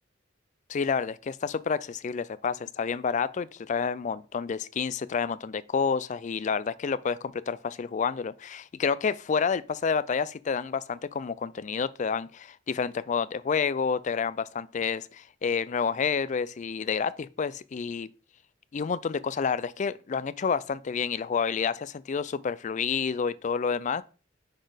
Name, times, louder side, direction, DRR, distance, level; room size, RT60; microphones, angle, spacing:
voice 1, 0.7-18.1 18.7-24.0, left 6 dB, 40° left, 0.4 m, -29 dB
6.3 x 4.1 x 4.9 m
head